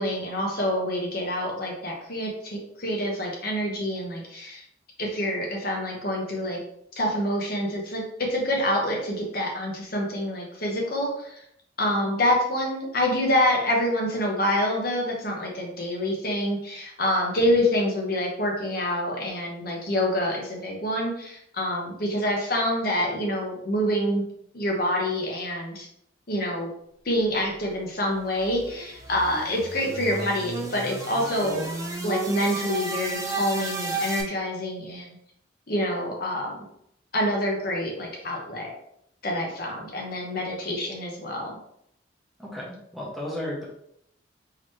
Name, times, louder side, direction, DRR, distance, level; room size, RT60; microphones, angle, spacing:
voice 1, 0.0-4.6 5.0-6.6 7.0-11.4 11.8-24.2 24.5-25.9 26.3-26.7 27.0-31.7 32.0-35.2 35.7-36.7 37.1-38.7 39.2-41.6, left 1 dB, 55° left, -1 dB, 1.0 m, -27 dB
sound 1, 27.8-34.2, right 3 dB, 15° right, 0.5 m, -33 dB
voice 2, 42.4-43.6, left 1 dB, ahead, -5 dB, 0.9 m, -34 dB
3.9 x 3.0 x 3.1 m, 0.73 s
head